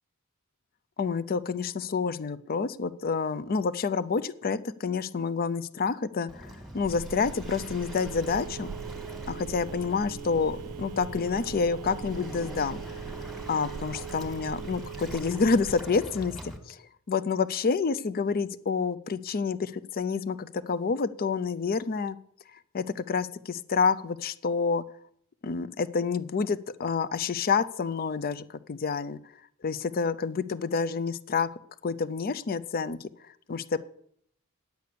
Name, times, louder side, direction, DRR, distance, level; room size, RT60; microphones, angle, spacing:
voice 1, 1.0-8.7 9.3-12.8 13.5-22.2 22.7-24.8 25.4-29.2 29.6-31.5 31.8-33.8, left 5 dB, 40° left, 15 dB, 0.5 m, -28 dB
Waves surf, 6.3-16.6, equal, ahead, 1.7 m, -43 dB
Telephone, 6.8-15.8, right 8 dB, 90° right, 0.3 m, -41 dB
9.3 x 8.3 x 6.8 m, 0.68 s
head